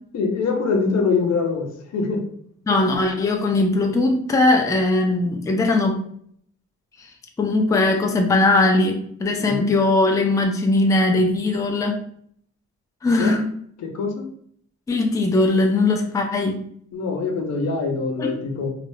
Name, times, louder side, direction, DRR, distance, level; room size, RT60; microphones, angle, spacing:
voice 1, 0.1-2.2 9.4-9.7 13.1-13.4 13.8-14.3 16.9-18.7, left 4 dB, 60° left, 3 dB, 0.7 m, -24 dB
voice 2, 2.7-6.0 7.4-12.0 13.0-13.5 14.9-16.6 18.2-18.3, left 2 dB, 10° left, 2 dB, 0.4 m, -19 dB
2.3 x 2.0 x 3.1 m, 0.63 s
cardioid pair, 90°, 30 cm